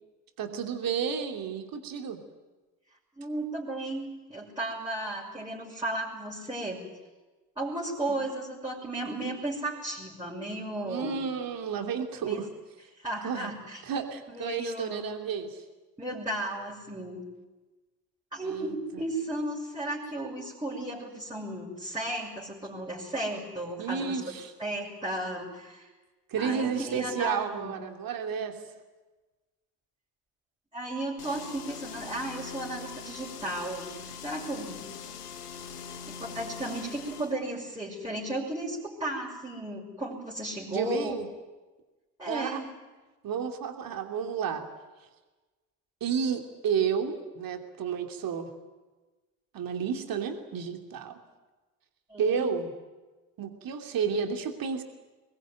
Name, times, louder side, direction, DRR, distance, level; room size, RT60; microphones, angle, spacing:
voice 1, 0.4-2.2 10.9-12.5 13.2-13.5 13.9-15.6 18.4-18.7 23.8-24.5 26.3-28.6 40.7-41.3 42.3-42.6 43.2-44.6 46.0-48.5 49.5-51.2 52.2-52.7 53.4-54.8, right 6 dB, 45° right, 5 dB, 3.0 m, -31 dB
voice 2, 3.2-6.8 7.6-11.2 12.2-12.4 13.0-13.8 14.3-15.1 16.0-17.3 18.3-24.2 24.6-25.9 26.4-27.8 30.7-34.9 36.1-41.1 42.2-42.7 52.1-52.5, right 1 dB, 10° right, -5 dB, 6.2 m, -34 dB
sound 1, 31.2-37.3, left 6 dB, 85° left, 1.4 m, -42 dB
23.5 x 20.5 x 9.1 m, 1.2 s
figure-of-eight pair, 50°, 46 cm